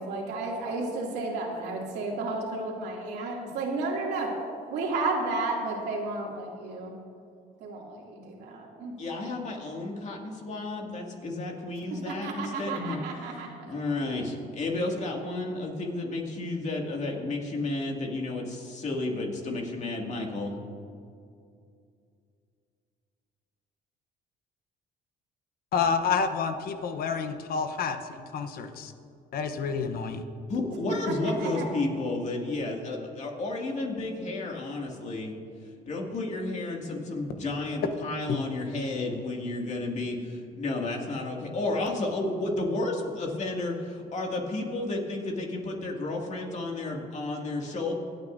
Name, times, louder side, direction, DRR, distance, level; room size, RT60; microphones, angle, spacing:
voice 1, 0.0-4.3 4.7-7.0 7.6-8.9 12.0-13.7 31.1-31.2 31.4-31.6, right 3 dB, 80° right, -2 dB, 2.6 m, -32 dB
voice 2, 9.0-20.6 30.5-35.3 35.9-47.9, left 2 dB, 45° left, 0 dB, 2.3 m, -32 dB
voice 3, 25.7-28.9 29.3-30.2, left 5 dB, 60° left, 8 dB, 0.9 m, -29 dB
26.0 x 9.0 x 2.7 m, 2.4 s
cardioid pair, 110°, 17 cm